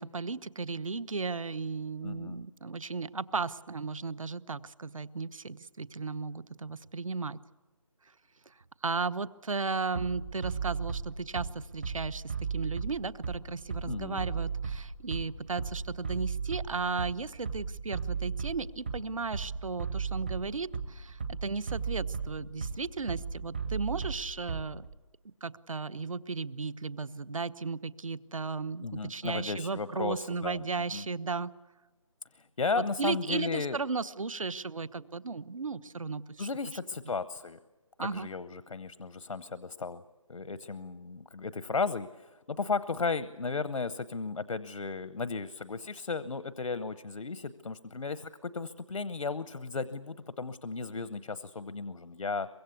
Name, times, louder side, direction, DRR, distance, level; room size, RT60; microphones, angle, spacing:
voice 1, 0.0-7.4 8.5-8.6 8.8-24.8 25.4-31.5 32.8-36.5 38.0-38.3, right 4 dB, 70° right, 17 dB, 1.0 m, -35 dB
voice 2, 2.0-2.4 13.8-14.3 28.8-30.6 30.9-31.1 32.3-33.8 36.4-37.6 38.0-40.0 40.3-52.5, left 4 dB, 85° left, 15 dB, 0.9 m, -35 dB
Bass drum, 9.9-24.9, right 5 dB, 20° right, 0.7 m, -35 dB
24.0 x 22.0 x 8.2 m, 1.2 s
figure-of-eight pair, 175°, 17 cm